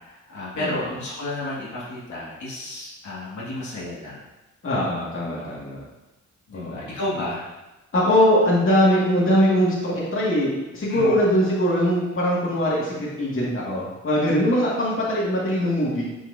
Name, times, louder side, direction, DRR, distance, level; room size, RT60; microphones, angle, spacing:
voice 1, 0.0-4.2 5.2-5.5 6.5-7.5 10.9-11.2, left 1 dB, 75° left, -8 dB, 2.3 m, -32 dB
voice 2, 4.6-5.8 6.5-6.9 7.9-16.0, equal, 45° left, -6 dB, 2.3 m, -21 dB
6.5 x 6.2 x 2.8 m, 1.0 s
cardioid pair, 65°, 30 cm